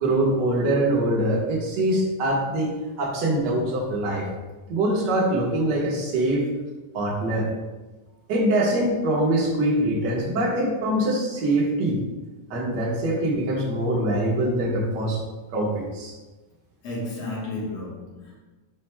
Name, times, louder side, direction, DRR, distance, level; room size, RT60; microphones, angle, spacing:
voice 1, 0.0-2.7 3.0-4.3 4.7-6.5 6.9-7.5 8.3-12.0 12.5-15.2 15.5-16.1, right 1 dB, 85° right, -4 dB, 0.9 m, -23 dB
voice 2, 16.8-18.4, left 2 dB, 55° left, -5 dB, 2.0 m, -32 dB
11.0 x 4.4 x 2.3 m, 1.2 s
omnidirectional pair, 4.2 m